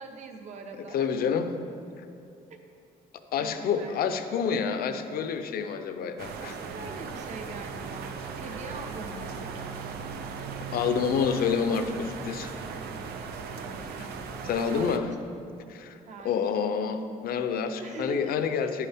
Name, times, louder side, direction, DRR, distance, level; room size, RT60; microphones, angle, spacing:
voice 1, 0.0-1.1 2.5-2.6 3.4-4.0 6.4-9.5 13.5-14.1 14.6-15.2 16.1-16.5 17.8-18.6, right 3 dB, 45° right, 4 dB, 1.0 m, -42 dB
voice 2, 0.8-1.6 3.3-6.5 10.7-12.5 14.4-15.1 15.7-16.0 16.2-18.9, left 6 dB, 70° left, 8 dB, 0.7 m, -28 dB
sound 1, 6.2-15.0, right 5 dB, 85° right, 0.7 m, -37 dB
11.0 x 10.0 x 3.6 m, 2.7 s
cardioid pair, 155°, 16 cm